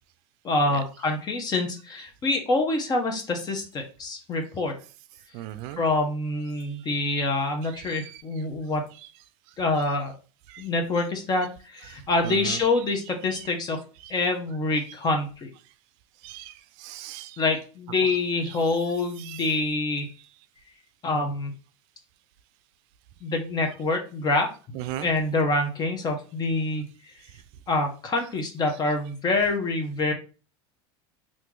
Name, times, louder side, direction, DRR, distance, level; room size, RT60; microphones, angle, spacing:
voice 1, 0.4-4.8 5.8-8.9 9.6-10.1 10.6-13.8 14.1-15.5 17.4-20.1 21.0-21.5 23.2-26.9 27.7-30.1, left 2 dB, 30° left, 3 dB, 0.9 m, -26 dB
voice 2, 5.3-5.8 6.6-6.7 7.7-8.2 10.5-10.6 12.2-12.6 16.2-17.4 18.5-18.6 19.2-19.5 24.7-25.1, right 13 dB, 65° right, 12 dB, 0.4 m, -37 dB
2.9 x 2.6 x 3.7 m, 0.35 s
supercardioid pair, 120°, 14 cm